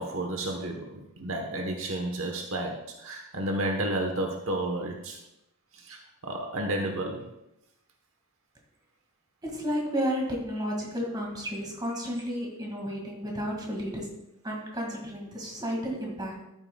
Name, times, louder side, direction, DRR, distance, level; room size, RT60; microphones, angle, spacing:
voice 1, 0.0-5.2 5.7-7.3, right 1 dB, 65° right, 2 dB, 1.2 m, -32 dB
voice 2, 9.4-14.1 14.4-16.4, equal, 20° right, -1 dB, 2.1 m, -32 dB
13.5 x 8.7 x 2.3 m, 0.86 s
head